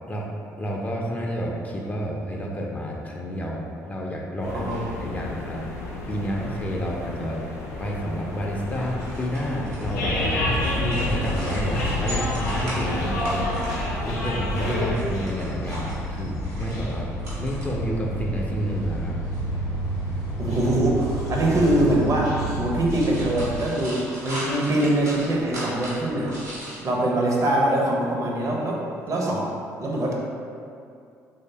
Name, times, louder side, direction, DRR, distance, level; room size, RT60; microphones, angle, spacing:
voice 1, 0.6-4.7 5.0-5.6 6.1-7.4 7.8-10.4 10.7-13.6 14.0-17.1 17.4-19.2, equal, 20° left, -2 dB, 0.4 m, -30 dB
sound 1, 4.4-14.9, left 2 dB, 85° left, 0.4 m, -31 dB
voice 2, 4.5-4.8 20.4-26.3 26.8-29.5 29.8-30.1, right 1 dB, 40° right, -2 dB, 0.5 m, -23 dB
sound 2, 8.7-26.8, equal, 85° right, 0.7 m, -39 dB
sound 3, 9.8-23.6, equal, 45° left, 0.7 m, -30 dB
3.1 x 2.0 x 2.7 m, 2.4 s
hypercardioid pair, 50°, 8 cm